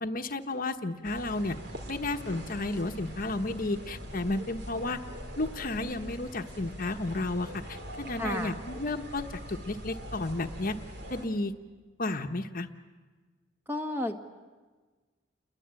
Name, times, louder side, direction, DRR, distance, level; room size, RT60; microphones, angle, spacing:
voice 1, 0.0-1.6 1.9-5.0 5.4-10.8 11.1-11.5 12.0-12.7, left 2 dB, 50° left, 6 dB, 1.2 m, -32 dB
sound 1, 1.0-11.3, equal, 60° right, 3.6 m, -42 dB
voice 2, 8.1-8.5 13.7-14.2, left 1 dB, 10° right, 5 dB, 1.6 m, -31 dB
29.5 x 22.0 x 9.0 m, 1.3 s
head